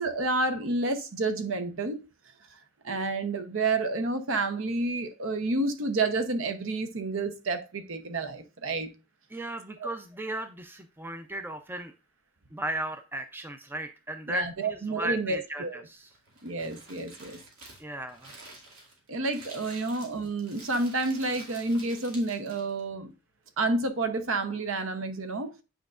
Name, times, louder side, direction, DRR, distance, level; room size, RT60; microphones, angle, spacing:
voice 1, 0.0-2.1 2.8-8.9 9.8-9.9 14.3-15.8 16.4-17.4 19.1-23.1 23.6-25.5, right 2 dB, 60° right, 0.8 m, -29 dB
voice 2, 9.3-11.9 12.5-16.1 17.8-18.4, right 1 dB, 10° right, 0.4 m, -36 dB
Crumpling crinkling, 16.0-22.8, right 2 dB, 90° right, 2.3 m, -49 dB
9.0 x 5.1 x 2.4 m
head